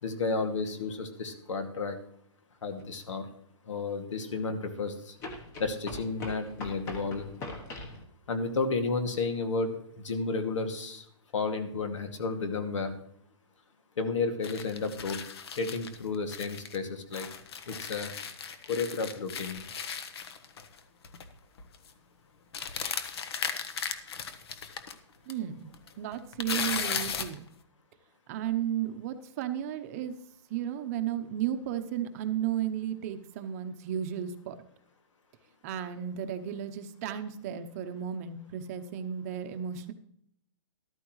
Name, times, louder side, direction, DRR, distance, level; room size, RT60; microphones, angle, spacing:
voice 1, 0.0-2.0 2.6-3.3 3.7-5.2 5.6-7.3 8.3-11.0 11.3-12.9 14.0-15.2 15.6-17.3 17.7-18.1 18.7-19.7, left 4 dB, 80° left, 6 dB, 2.3 m, -32 dB
sound 1, 2.8-2.9 5.2-8.0, left 2 dB, 15° left, 1.1 m, -41 dB
sound 2, 14.4-16.8 17.1-20.8 21.0-21.3 21.6-21.9 22.5-24.9 25.3-25.4 25.7-27.4, left 6 dB, 55° left, 1.2 m, -36 dB
voice 2, 25.3-25.7 26.0-27.5 28.3-30.2 30.5-34.6 35.6-39.9, right 10 dB, 30° right, 8 dB, 0.8 m, -34 dB
13.5 x 12.5 x 3.2 m, 0.69 s
hypercardioid pair, 165°, 16 cm